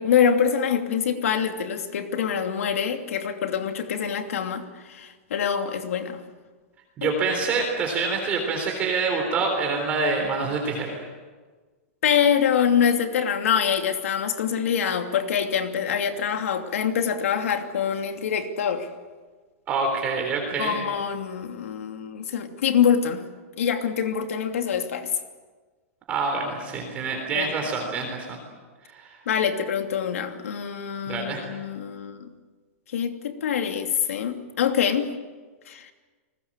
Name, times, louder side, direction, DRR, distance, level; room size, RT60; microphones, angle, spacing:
voice 1, 0.0-6.2 7.0-7.1 12.0-18.9 20.6-23.2 23.6-25.1 27.3-27.5 29.3-32.3 32.9-35.1 35.7-35.9, left 8 dB, 75° left, 5 dB, 2.9 m, -25 dB
voice 2, 7.0-11.0 19.7-20.9 26.1-28.4 28.9-29.1 31.0-31.4, right 4 dB, 20° right, 2 dB, 3.7 m, -26 dB
30.0 x 20.5 x 7.5 m, 1.4 s
supercardioid pair, 175°, 8 cm